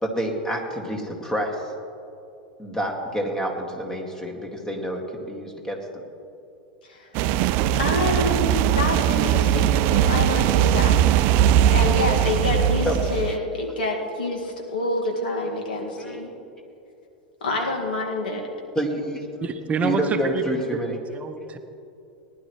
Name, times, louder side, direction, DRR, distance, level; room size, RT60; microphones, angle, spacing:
voice 1, 0.0-1.7 2.6-5.8 12.9-13.1 16.1-16.2 18.8-19.3 19.8-21.0, right 1 dB, 15° left, 2 dB, 2.1 m, -28 dB
voice 2, 6.8-7.3 7.7-11.4 11.7-16.3 17.4-18.4, left 2 dB, 75° left, 0 dB, 2.1 m, -27 dB
sound 1, 7.1-13.3, right 11 dB, 50° right, 0.4 m, -20 dB
voice 3, 19.4-21.6, right 4 dB, 25° right, 7 dB, 0.7 m, -28 dB
19.0 x 11.0 x 3.2 m, 2.7 s
hypercardioid pair, 90°, 5 cm